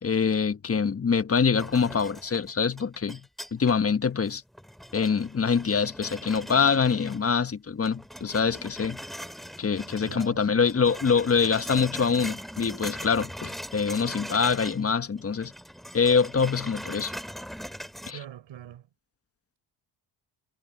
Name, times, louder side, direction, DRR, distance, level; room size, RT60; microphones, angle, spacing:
voice 1, 0.0-3.2 3.5-4.4 4.9-9.0 9.6-15.5 15.9-17.1 18.1-18.2, left 6 dB, 30° left, 1.3 m, -25 dB
sound 1, 1.6-3.9 4.3-7.5 7.8-10.3 10.6-14.9 15.1-18.1, equal, ahead, 2.7 m, -41 dB
voice 2, 10.1-10.7 18.1-18.9, right 11 dB, 65° right, 6.8 m, -43 dB
supercardioid pair, 75°, 49 cm